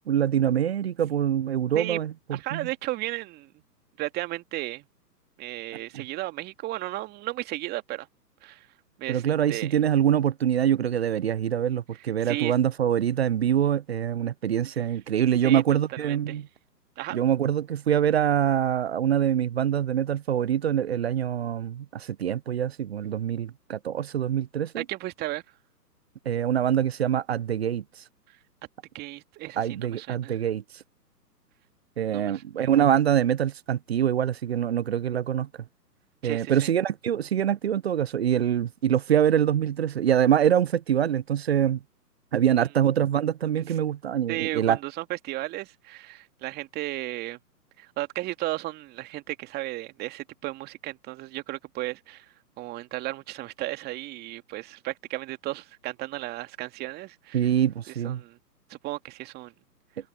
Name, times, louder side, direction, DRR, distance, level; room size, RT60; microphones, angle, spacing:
voice 1, 0.1-2.7 9.1-16.5 17.1-24.8 26.3-27.8 29.6-30.6 32.0-35.5 36.2-41.8 42.3-44.8 57.3-58.2, right 10 dB, 40° right, 0.7 m, -24 dB
voice 2, 2.3-3.5 4.0-4.9 5.4-8.1 8.4-8.7 9.0-9.2 9.5-9.7 12.2-12.5 15.4-15.6 16.0-16.4 17.0-17.2 24.8-25.4 28.9-30.4 32.1-32.4 36.2-36.7 44.3-47.4 47.8-52.3 52.6-57.5 58.0-58.4 58.7-59.5, right 18 dB, 20° right, 2.4 m, -34 dB
figure-of-eight pair, 130°, 49 cm